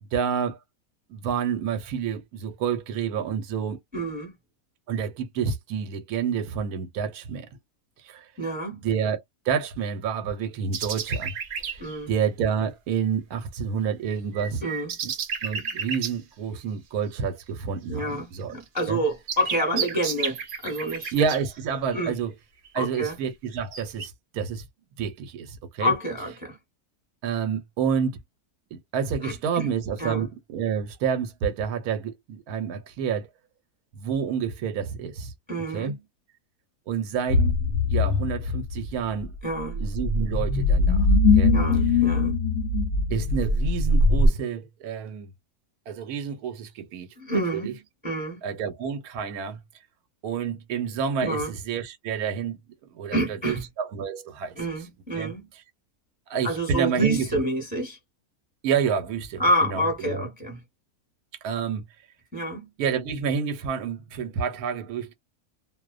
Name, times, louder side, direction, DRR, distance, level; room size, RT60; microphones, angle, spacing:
voice 1, 0.1-0.6 1.1-3.8 4.9-7.5 8.0-8.3 8.8-11.3 12.1-14.6 15.0-15.1 15.4-18.5 18.9-19.0 21.1-22.3 22.7-24.6 25.0-25.9 27.2-28.2 28.7-33.3 33.9-35.3 35.7-35.9 36.9-37.5 37.9-39.3 39.7-41.1 41.3-41.6 43.1-45.3 45.9-47.1 47.5-47.7 48.4-49.6 50.2-52.6 52.9-54.5 55.1-55.3 56.3-57.2 58.6-60.3 61.4-61.8 62.8-65.1, right 7 dB, 80° right, 1.1 m, -29 dB
voice 2, 3.9-4.3 8.4-8.8 11.8-12.1 14.6-14.9 17.9-21.1 21.9-22.1 22.7-23.2 25.8-26.6 29.2-29.7 30.0-30.2 35.5-36.0 39.4-39.8 41.5-42.4 47.2-47.8 48.0-48.4 51.2-51.5 53.1-53.6 54.6-55.5 56.4-58.0 59.4-60.6 62.3-62.7, right 1 dB, 5° right, 0.9 m, -28 dB
sound 1, 10.7-12.0 14.1-16.2 18.4-18.5 18.8-22.1 22.7-22.9 23.5-24.1, right 6 dB, 60° right, 0.5 m, -32 dB
sound 2, 37.3-44.3, left 3 dB, 60° left, 0.8 m, -21 dB
2.5 x 2.1 x 2.3 m
omnidirectional pair, 1.6 m